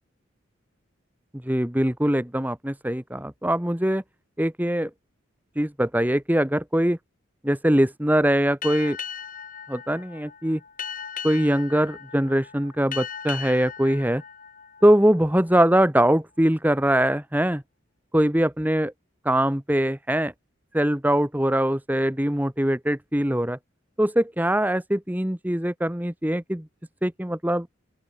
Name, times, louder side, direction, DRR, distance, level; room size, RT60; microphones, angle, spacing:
voice 1, 1.4-4.0 4.4-4.9 5.6-7.0 7.4-9.0 9.7-10.6 11.2-14.2 14.8-17.6 18.1-18.9 19.2-20.3 20.7-23.6 24.0-26.7 27.0-27.7, right 1 dB, 10° right, 1.3 m, -22 dB
Boat Water vehicle, 8.6-15.7, left 8 dB, 45° left, 3.3 m, -38 dB
open air
head